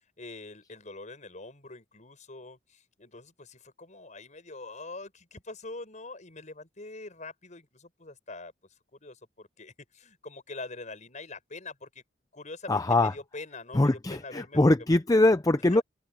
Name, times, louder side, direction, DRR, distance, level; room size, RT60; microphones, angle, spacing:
voice 1, 0.2-8.5 9.0-12.0 12.3-14.9 15.7-15.8, left 3 dB, 45° left, 6.5 m, -44 dB
voice 2, 12.7-13.1 13.7-15.8, left 2 dB, 20° left, 0.5 m, -22 dB
head